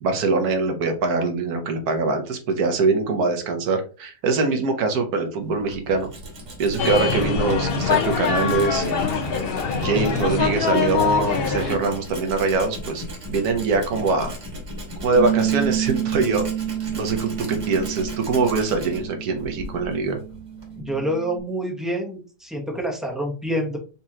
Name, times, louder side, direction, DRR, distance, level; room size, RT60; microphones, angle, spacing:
voice 1, 0.0-6.1 6.6-9.1 9.7-14.3 15.0-16.5 16.9-20.2, right 4 dB, 65° right, 6 dB, 1.3 m, -23 dB
Tools, 5.4-20.8, equal, 50° right, 1.6 m, -36 dB
sound 1, 6.8-11.8, left 6 dB, 70° left, 0.5 m, -23 dB
Bass guitar, 15.2-21.4, right 10 dB, 30° right, 1.3 m, -29 dB
voice 2, 20.8-23.8, equal, ahead, 0 dB, 0.5 m, -27 dB
4.3 x 2.9 x 3.6 m, 0.36 s
omnidirectional pair, 1.8 m